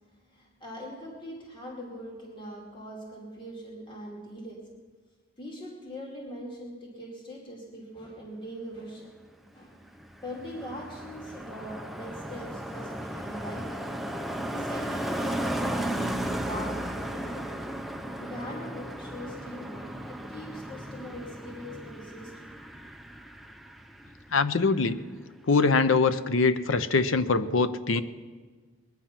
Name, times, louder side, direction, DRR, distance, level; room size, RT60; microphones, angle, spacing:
voice 1, 0.1-4.8 5.4-9.2 9.5-9.8 10.2-13.9 14.5-17.5 18.2-22.5, equal, 25° left, -2 dB, 2.4 m, -42 dB
Car passing by, 9.6-24.4 24.7-25.0, right 1 dB, ahead, 0.6 m, -35 dB
voice 2, 24.3-25.0 25.5-28.0, left 4 dB, 80° left, 13 dB, 0.7 m, -23 dB
21.0 x 9.5 x 5.9 m, 1.4 s
head